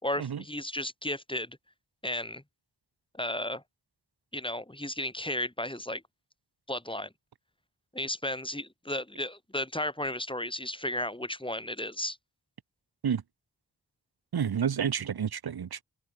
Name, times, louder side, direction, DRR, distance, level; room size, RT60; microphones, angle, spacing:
voice 1, 0.0-1.6 2.0-2.4 3.1-3.6 4.3-6.0 6.7-7.1 7.9-12.2, left 1 dB, 15° left, 3.8 m, -34 dB
voice 2, 14.3-15.8, right 8 dB, 70° right, 1.0 m, -30 dB
open air
cardioid pair, 55°, 39 cm